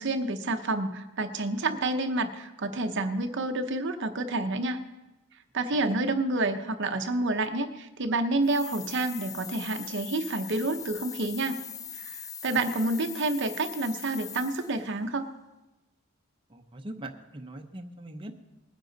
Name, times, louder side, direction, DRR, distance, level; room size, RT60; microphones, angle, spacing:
voice 1, 0.0-4.8 5.5-11.6 11.9-15.3, right 2 dB, 55° right, 7 dB, 0.8 m, -29 dB
sound 1, 8.4-14.9, left 7 dB, 15° left, 0.3 m, -41 dB
voice 2, 16.5-18.3, right 1 dB, 25° right, 3 dB, 0.8 m, -41 dB
20.0 x 10.0 x 4.0 m, 1.0 s
head